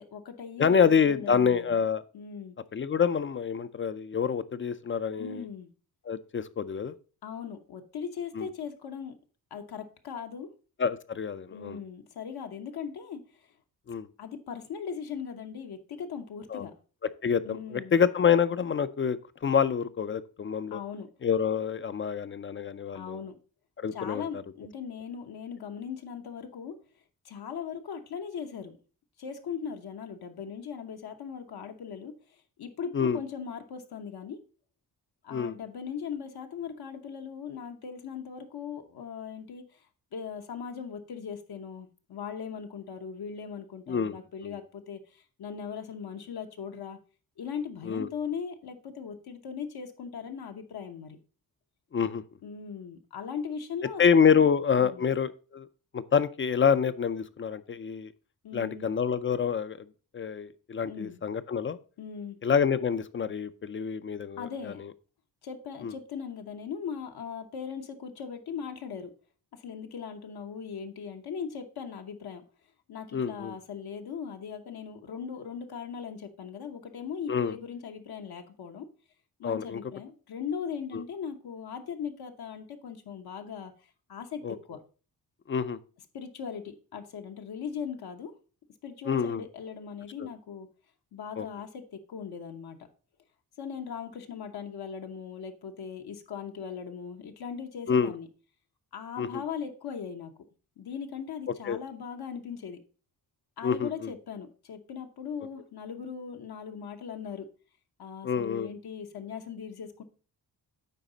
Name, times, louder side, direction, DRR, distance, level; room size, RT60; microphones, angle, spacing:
voice 1, 0.0-1.8 2.1-2.6 5.2-5.7 7.2-9.1 9.5-10.5 11.5-13.5 14.2-16.7 17.4-18.0 20.7-21.1 22.9-23.4 23.9-26.8 27.2-28.8 29.2-34.4 35.2-39.9 40.1-47.0 47.4-51.2 52.4-54.5 54.8-55.0 58.4-58.9 60.8-61.2 62.0-62.4 64.4-64.8 65.4-69.1 69.5-72.4 72.9-78.9 79.4-84.8 86.1-88.3 88.8-90.7 91.1-92.8 93.6-98.3 98.9-100.3 100.8-102.8 103.6-107.5 108.0-110.0, left 7 dB, 75° left, 0.9 m, -39 dB
voice 2, 0.6-2.0 2.7-5.4 6.1-6.9 8.4-8.5 10.8-11.8 13.9-14.1 16.5-16.7 17.2-20.8 21.2-23.2 23.8-24.4 32.9-33.2 35.3-35.5 43.9-44.2 44.4-44.6 47.9-48.1 51.9-52.2 54.0-55.7 55.9-58.1 58.5-59.8 60.1-61.8 62.4-64.7 65.8-65.9 73.1-73.5 77.3-77.5 79.4-79.8 80.9-81.0 84.4-84.6 85.5-85.8 89.1-89.4 91.4-91.5 97.9-98.1 99.2-99.4 101.7-101.8 103.6-104.1 108.2-108.7, left 7 dB, 35° left, 0.4 m, -27 dB
9.2 x 4.0 x 3.9 m
cardioid pair, 105°, 39 cm